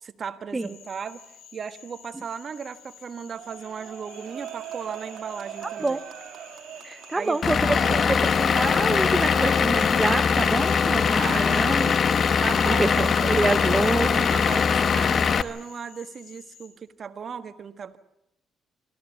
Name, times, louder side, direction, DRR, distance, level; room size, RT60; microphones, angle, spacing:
voice 1, 0.0-1.2 1.5-6.0 7.1-8.2 11.1-11.6 12.4-18.0, right 6 dB, 50° right, 11 dB, 1.4 m, -36 dB
Cricket / Frog, 0.6-16.7, left 7 dB, 85° left, 4.3 m, -50 dB
sound 1, 3.3-12.3, right 10 dB, 75° right, 1.7 m, -42 dB
voice 2, 6.8-7.6 7.8-7.9 8.4-12.0 12.7-14.3, right 2 dB, 20° right, 11 dB, 0.7 m, -27 dB
Vehicle / Engine, 7.4-15.4, left 6 dB, 50° left, 1.0 m, -21 dB
25.5 x 14.5 x 9.4 m, 0.84 s
cardioid pair, 90°, 0 cm